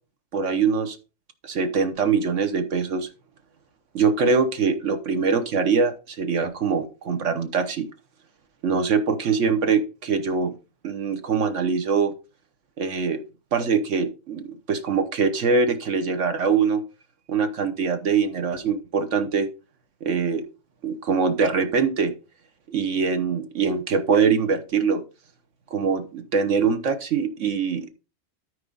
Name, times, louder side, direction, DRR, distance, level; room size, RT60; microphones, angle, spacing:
voice 1, 0.3-1.0 1.4-3.1 3.9-7.9 8.6-10.5 10.8-12.1 12.8-13.2 13.5-16.8 17.3-19.5 20.0-20.5 20.8-22.1 22.7-25.0 25.7-27.9, right 5 dB, 70° right, 8 dB, 1.2 m, -23 dB
13.0 x 4.8 x 3.9 m, 0.32 s
omnidirectional pair, 1.3 m